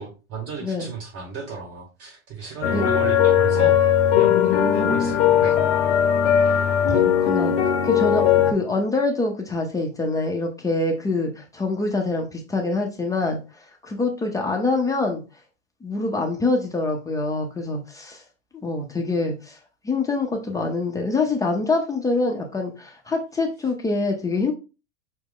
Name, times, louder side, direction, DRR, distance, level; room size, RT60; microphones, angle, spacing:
voice 1, 0.0-3.8 4.1-5.6, right 5 dB, 40° right, -2 dB, 2.0 m, -34 dB
voice 2, 2.4-2.9 4.3-5.2 6.9-13.4 13.8-15.2 15.8-18.2 18.6-19.6 19.8-24.5, left 3 dB, 10° left, 0 dB, 0.6 m, -25 dB
sound 1, 2.6-8.5, left 9 dB, 55° left, 0.8 m, -19 dB
5.9 x 2.1 x 3.7 m, 0.30 s
hypercardioid pair, 120°, 36 cm